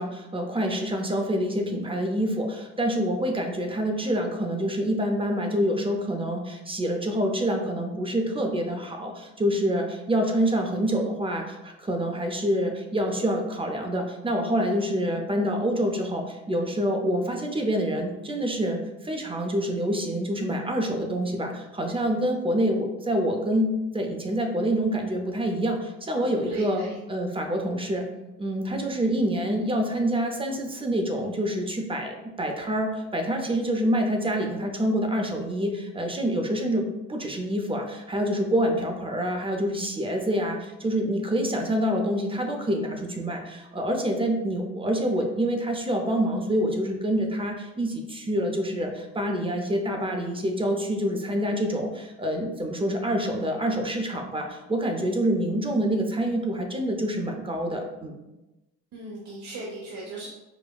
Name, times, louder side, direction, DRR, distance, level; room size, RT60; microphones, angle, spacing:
voice 1, 0.0-28.1 28.4-36.8 37.1-58.2, equal, 20° right, 3 dB, 0.5 m, -27 dB
voice 2, 26.1-27.0 58.9-60.3, right 1 dB, 70° right, -5 dB, 0.9 m, -37 dB
5.0 x 2.2 x 2.3 m, 1.0 s
cardioid pair, 90°, 30 cm